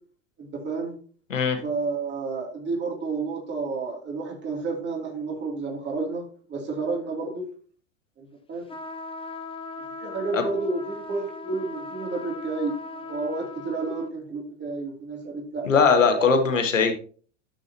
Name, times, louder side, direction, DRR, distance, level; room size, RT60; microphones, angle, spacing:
voice 1, 0.4-0.9 1.6-7.5 8.2-8.6 10.0-16.3, right 3 dB, 30° right, 0 dB, 3.1 m, -31 dB
sound 1, 8.7-14.1, left 3 dB, 15° left, 1.1 m, -39 dB
voice 2, 15.6-16.9, left 5 dB, 90° left, 6 dB, 1.6 m, -20 dB
13.0 x 6.6 x 2.9 m, 0.42 s
hypercardioid pair, 95°, 38 cm